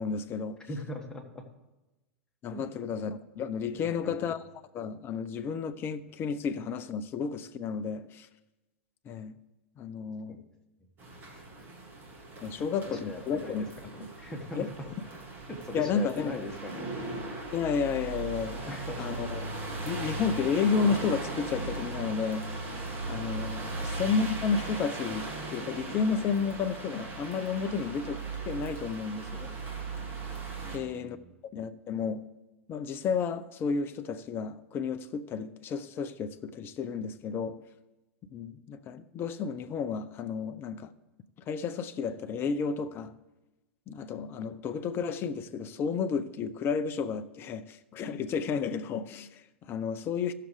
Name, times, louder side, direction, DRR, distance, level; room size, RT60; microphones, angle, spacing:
voice 1, 0.0-0.6 2.4-4.4 4.7-8.3 9.1-9.3 9.8-10.4 12.4-13.6 14.6-14.7 15.7-16.4 17.5-18.7 19.0-19.4 19.9-22.5 23.1-29.5 30.7-31.2 31.5-32.3 32.7-37.6 38.3-40.9 41.5-43.2 43.9-50.3, left 6 dB, 35° left, 0.6 m, -32 dB
voice 2, 0.7-1.4 2.5-2.7 3.7-4.3 10.3-10.4 11.3-11.7 12.5-14.7 15.5-17.0 18.7-19.1 30.6-31.3, left 2 dB, 10° left, 1.8 m, -41 dB
sound 1, 11.0-30.8, right 3 dB, 30° right, 2.2 m, -38 dB
16.5 x 6.7 x 3.3 m
hypercardioid pair, 95°, 7 cm